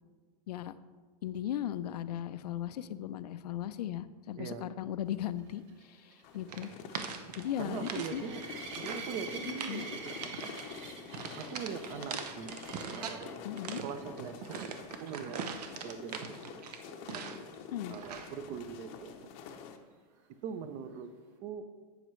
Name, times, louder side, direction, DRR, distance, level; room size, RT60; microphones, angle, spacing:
voice 1, 1.2-6.7 7.4-8.2 9.5-9.8 13.4-13.8 17.7-18.0, left 11 dB, 85° left, 13 dB, 0.5 m, -37 dB
sound 1, 5.4-13.3 13.9-14.2 14.5-14.6 15.0-15.1 18.7-18.8, right 5 dB, 50° right, 1.3 m, -46 dB
sound 2, 6.2-19.8, left 6 dB, 30° left, 0.7 m, -47 dB
sound 3, 6.5-8.1 8.4-9.1 9.4-9.8 10.2-10.7 11.1-13.3 13.6-17.6 17.9-18.4, right 6 dB, 85° right, 0.9 m, -42 dB
voice 2, 7.6-8.4 8.8-10.5 11.4-13.4 13.8-14.7 15.0-15.4 15.8-16.6 16.9-17.2 17.9-19.1 20.4-21.1 21.4-21.7, right 7 dB, 30° right, 11 dB, 0.5 m, -41 dB
12.0 x 7.9 x 3.1 m, 1.5 s
supercardioid pair, 160°, 20 cm